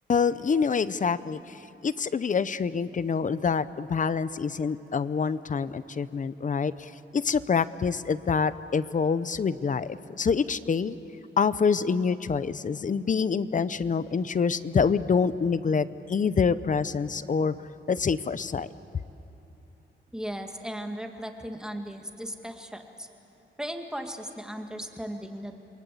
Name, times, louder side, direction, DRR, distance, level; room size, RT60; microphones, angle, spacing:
voice 1, 0.1-1.4 1.8-11.0 11.4-17.5 17.9-18.7, left 5 dB, 40° left, 15 dB, 0.7 m, -26 dB
voice 2, 20.1-23.1 23.6-25.6, equal, 5° right, 4 dB, 2.0 m, -37 dB
28.5 x 22.5 x 8.5 m, 3.0 s
wide cardioid pair, 130°, 20 cm